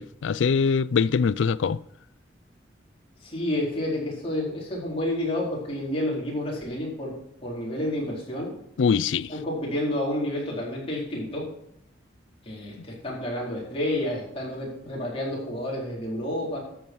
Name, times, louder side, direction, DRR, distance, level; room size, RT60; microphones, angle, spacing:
voice 1, 0.0-1.8 8.8-9.3, left 5 dB, 75° left, 0.4 m, -23 dB
voice 2, 3.2-7.2 7.4-8.5 9.3-11.5 12.4-16.6, left 1 dB, 30° left, 4.3 m, -30 dB
13.0 x 7.2 x 4.7 m
head